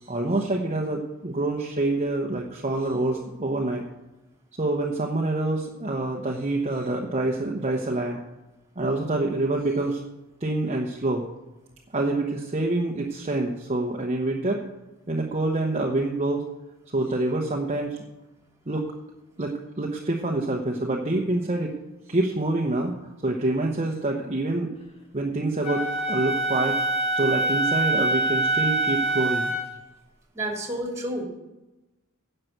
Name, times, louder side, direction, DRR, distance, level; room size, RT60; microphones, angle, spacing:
voice 1, 0.0-3.8 4.6-8.2 8.8-10.0 10.4-11.2 11.9-14.6 15.1-16.4 16.9-18.0 18.7-18.9 19.4-21.7 22.1-22.9 23.2-24.7 25.1-26.8 27.1-29.5, right 2 dB, 30° right, 0 dB, 1.1 m, -26 dB
Wind instrument woodwind instrument, 25.6-29.7, right 2 dB, 30° left, 1.4 m, -25 dB
voice 2, 30.3-31.2, right 1 dB, 15° right, 0 dB, 2.8 m, -30 dB
10.5 x 6.7 x 7.9 m, 1.0 s
head